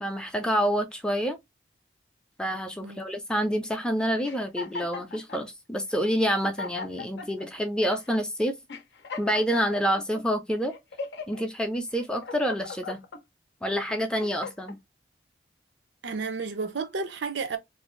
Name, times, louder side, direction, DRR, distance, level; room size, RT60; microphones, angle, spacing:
voice 1, 0.0-1.4 2.4-8.5 9.2-10.7 11.3-13.0 13.6-14.8, equal, 5° left, 0.4 m, -27 dB
sound 1, 4.2-5.4 6.1-6.2 6.4-7.5 8.1-8.2 8.7-10.2 10.7-11.4 11.9-13.2 13.8-14.8, left 4 dB, 70° left, 0.5 m, -39 dB
voice 2, 16.0-17.6, right 4 dB, 80° right, 0.5 m, -31 dB
2.6 x 2.4 x 3.0 m
head